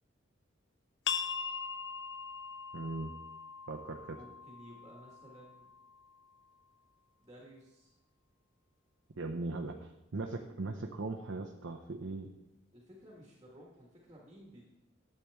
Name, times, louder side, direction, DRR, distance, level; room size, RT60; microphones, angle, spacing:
sound 1, 1.1-6.4, left 6 dB, 65° left, 0.6 m, -41 dB
voice 1, 2.7-3.1 3.7-4.2 9.2-12.3, right 3 dB, 75° right, 2 dB, 0.7 m, -39 dB
voice 2, 4.1-5.7 7.2-7.9 12.7-14.7, equal, 20° right, -3 dB, 1.6 m, -55 dB
11.5 x 7.6 x 3.5 m, 0.87 s
head